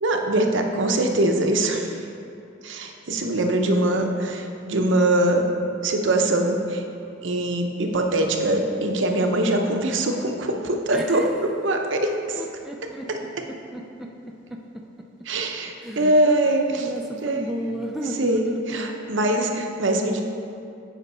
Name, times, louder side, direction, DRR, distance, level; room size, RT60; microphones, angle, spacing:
voice 1, 0.0-1.9 2.6-5.5 5.8-6.8 7.2-11.3 11.6-12.4 13.1-13.2 15.3-16.9 17.2-17.5 18.2-20.2, right 1 dB, 65° right, 4 dB, 0.7 m, -22 dB
voice 2, 10.9-11.3 12.3-14.1 14.5-14.6 15.8-19.0, right 1 dB, ahead, 0 dB, 0.4 m, -33 dB
8.2 x 5.0 x 5.5 m, 2.6 s
head